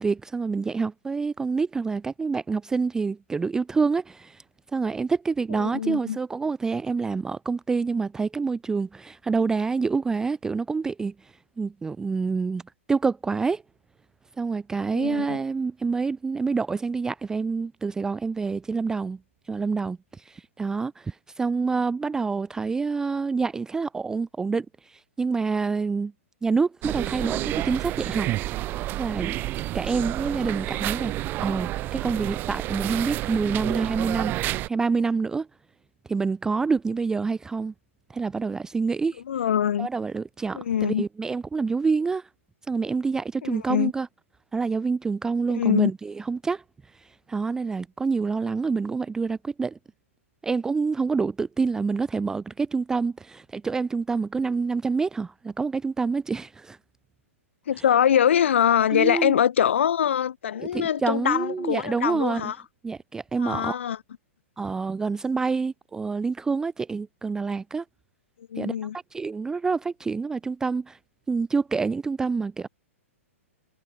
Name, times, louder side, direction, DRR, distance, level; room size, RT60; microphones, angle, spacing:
voice 1, 0.0-4.4 4.7-12.6 12.9-13.6 14.4-19.2 19.5-26.1 26.4-28.3 29.0-29.4 29.7-31.1 31.4-34.3 34.7-35.5 36.1-37.7 38.1-39.2 39.8-42.3 42.7-44.1 44.5-46.6 46.9-49.8 50.4-56.8 58.9-59.4 60.7-62.5 62.8-63.8 64.6-67.8 68.6-68.7 69.1-71.0 71.3-72.7, right 4 dB, 10° right, 0.4 m, -27 dB
voice 2, 5.5-6.2 14.9-15.4 39.3-39.9 40.5-41.0 43.4-43.9 45.5-45.9 57.7-62.6 63.4-64.0 68.5-69.0, left 9 dB, 60° left, 0.4 m, -23 dB
sound 1, 26.8-34.7, right 16 dB, 25° right, 1.0 m, -30 dB
figure-of-eight pair, 110°, 8 cm